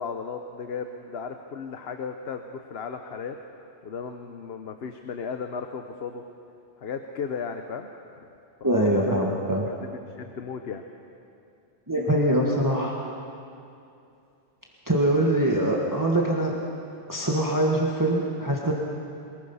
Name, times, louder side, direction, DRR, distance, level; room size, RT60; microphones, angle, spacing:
voice 1, 0.0-3.4 3.8-6.2 6.8-8.3 8.6-9.4 9.7-10.8, left 5 dB, 65° left, 6 dB, 1.1 m, -35 dB
voice 2, 8.6-9.7 11.9-13.0 14.9-16.5 17.1-18.7, right 1 dB, 15° right, -2 dB, 1.6 m, -23 dB
23.5 x 20.5 x 5.6 m, 2.6 s
omnidirectional pair, 1.2 m